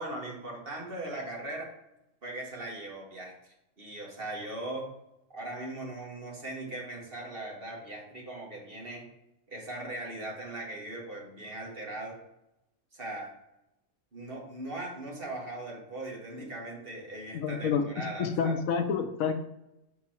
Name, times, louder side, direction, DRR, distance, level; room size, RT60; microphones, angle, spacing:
voice 1, 0.0-1.7 2.2-3.3 3.8-4.9 5.3-9.1 9.5-12.2 12.9-13.3 14.1-18.5, right 2 dB, 40° right, -2 dB, 1.7 m, -39 dB
voice 2, 17.3-17.8 18.2-19.4, left 6 dB, 70° left, 7 dB, 1.1 m, -28 dB
5.9 x 4.5 x 4.3 m, 0.85 s
omnidirectional pair, 1.5 m